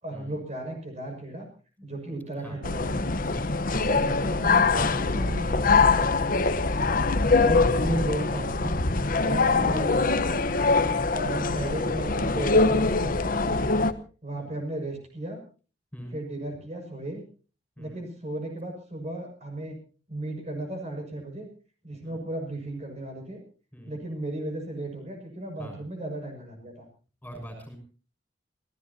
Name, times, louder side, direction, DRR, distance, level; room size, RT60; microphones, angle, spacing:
voice 1, 0.0-1.5 1.8-2.9 3.8-6.6 7.4-8.8 9.1-10.3 11.1-13.6 14.2-15.4 16.1-17.2 17.8-19.8 20.1-21.5 21.8-23.4 23.8-26.9, right 1 dB, 35° right, 3 dB, 6.6 m, -35 dB
sound 1, 2.6-13.9, left 3 dB, 50° left, 1.1 m, -23 dB
voice 2, 3.3-3.6 9.5-9.8 10.8-11.1 14.4-14.5 15.9-16.2 17.8-18.0 22.0-22.2 23.7-24.0 25.6-25.8 27.2-27.8, equal, 10° left, 5 dB, 6.4 m, -43 dB
28.5 x 16.5 x 2.8 m, 0.37 s
head